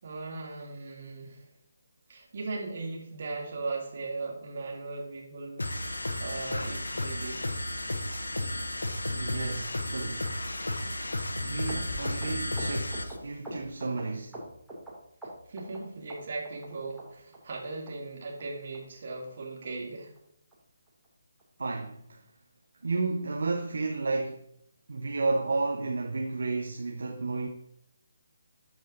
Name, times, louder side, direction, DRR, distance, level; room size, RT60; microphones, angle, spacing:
voice 1, 0.0-1.5 2.1-5.7 6.2-7.5 15.5-20.1, right 3 dB, 50° right, 2.6 m, -38 dB
sound 1, 5.6-13.2, left 1 dB, 75° left, 0.9 m, -33 dB
voice 2, 9.1-10.3 11.4-14.4 21.6-22.2 22.8-24.5 24.9-27.5, right 3 dB, 65° right, 1.0 m, -32 dB
sound 2, 11.7-14.9 15.2-15.8 16.1-16.7 17.0-17.1 17.3-17.6 17.9-18.0 18.2-18.4 18.7-18.8 19.1-19.3 19.6-19.7 20.0-20.2 20.5-20.6 20.9-21.1 21.4-21.5, equal, ahead, 2.5 m, -42 dB
13.0 x 4.9 x 2.7 m
figure-of-eight pair, 145°, 0 cm